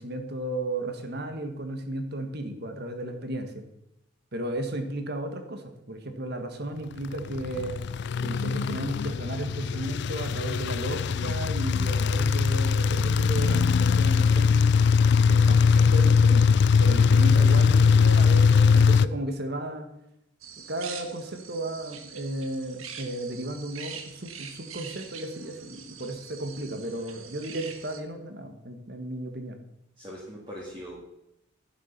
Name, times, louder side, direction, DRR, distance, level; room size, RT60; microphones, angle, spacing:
voice 1, 0.0-3.6 4.3-7.7 8.2-14.7 15.3-19.9 20.7-29.6, right 1 dB, 50° right, 6 dB, 1.6 m, -34 dB
sound 1, 7.1-19.1, left 5 dB, 55° left, 0.3 m, -21 dB
sound 2, 20.4-28.0, right 7 dB, 85° right, 1.5 m, -44 dB
voice 2, 30.0-31.0, equal, 25° right, -4 dB, 2.2 m, -41 dB
11.0 x 10.0 x 5.9 m, 0.85 s
head